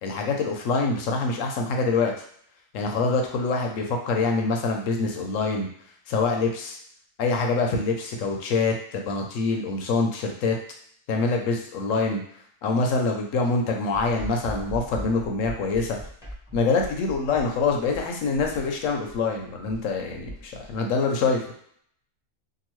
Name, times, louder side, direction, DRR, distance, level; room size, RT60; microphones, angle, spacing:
voice 1, 0.0-2.1 2.7-5.7 6.1-6.8 7.2-10.6 11.1-12.2 12.6-16.0 16.5-21.4, left 3 dB, 70° left, 2 dB, 0.9 m, -25 dB
sound 1, 13.9-20.7, equal, 5° right, 0.8 m, -39 dB
2.8 x 2.5 x 3.0 m, 0.64 s
omnidirectional pair, 1.5 m